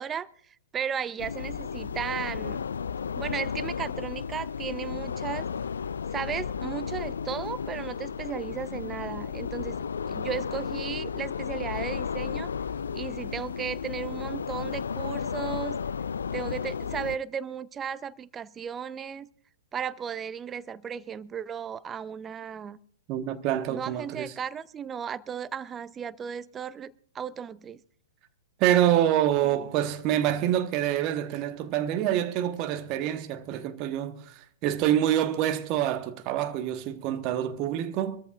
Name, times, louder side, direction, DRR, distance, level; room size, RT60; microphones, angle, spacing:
voice 1, 0.0-2.6 3.2-5.5 6.1-9.8 10.1-12.5 12.9-15.8 16.3-19.3 19.7-22.8 23.7-27.8 29.5-29.7, right 7 dB, 20° right, 0.5 m, -35 dB
sound 1, 1.2-17.2, left 6 dB, 70° left, 0.4 m, -33 dB
voice 2, 23.1-24.3 28.6-38.2, right 11 dB, 35° right, 1.2 m, -26 dB
25.0 x 14.0 x 2.5 m
figure-of-eight pair, 110°, 0 cm